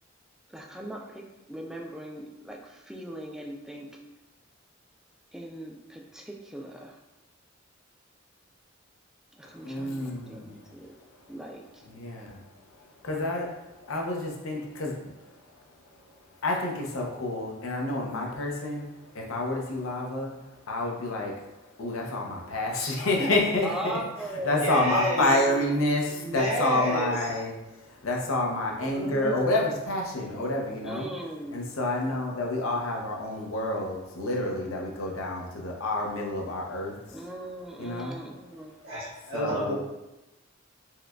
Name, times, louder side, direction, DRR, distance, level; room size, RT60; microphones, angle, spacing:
voice 1, 0.5-4.0 5.3-7.0 9.4-10.9 11.3-11.6 23.2-23.3 23.6-24.9 25.2-25.8 30.8-31.6 37.1-38.7, right 1 dB, 5° right, -1 dB, 0.3 m, -39 dB
voice 2, 9.6-10.6 11.9-12.5 13.0-15.3 16.4-18.9 19.1-21.4 21.8-24.0 24.4-31.1 31.5-37.2 37.8-38.2 39.3-39.8, left 2 dB, 90° left, 0 dB, 0.7 m, -29 dB
voice 3, 24.6-25.2 26.2-27.1 28.9-29.4 38.8-39.8, equal, 85° right, -7 dB, 1.4 m, -30 dB
4.4 x 2.2 x 2.3 m, 1.0 s
head